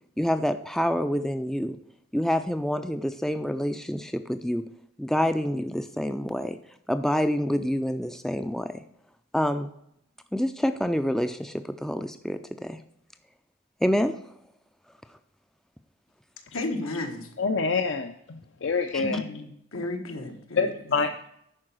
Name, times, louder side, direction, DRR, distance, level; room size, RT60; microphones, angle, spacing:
voice 1, 0.2-1.8 2.1-4.6 5.0-6.6 6.9-8.8 9.3-9.7 10.3-12.8 13.8-14.2 18.9-19.0, equal, ahead, 9 dB, 0.3 m, -27 dB
voice 2, 16.5-17.3 19.0-21.0, left 2 dB, 85° left, 3 dB, 1.7 m, -34 dB
voice 3, 17.4-19.2 20.6-21.3, left 4 dB, 65° left, 6 dB, 0.6 m, -26 dB
11.0 x 4.7 x 6.1 m, 0.76 s
head